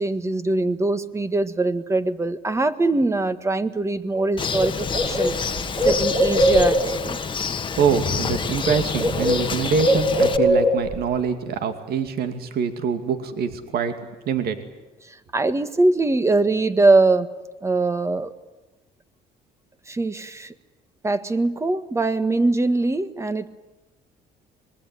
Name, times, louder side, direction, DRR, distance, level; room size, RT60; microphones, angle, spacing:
voice 1, 0.0-5.4 5.8-7.2 15.1-17.3 17.6-18.3 19.9-20.5 21.0-23.5, right 2 dB, 15° right, 12 dB, 1.6 m, -22 dB
Bird, 4.2-4.3 4.5-7.1 8.1-8.4 8.6-11.1, equal, 45° right, 4.9 m, -21 dB
Bird 2, 4.4-10.4, left 6 dB, 30° left, 1.4 m, -28 dB
voice 2, 7.8-13.9 14.3-14.6, right 6 dB, 65° right, 8 dB, 2.4 m, -24 dB
25.5 x 21.5 x 9.7 m, 1.1 s
cardioid pair, 110°, 17 cm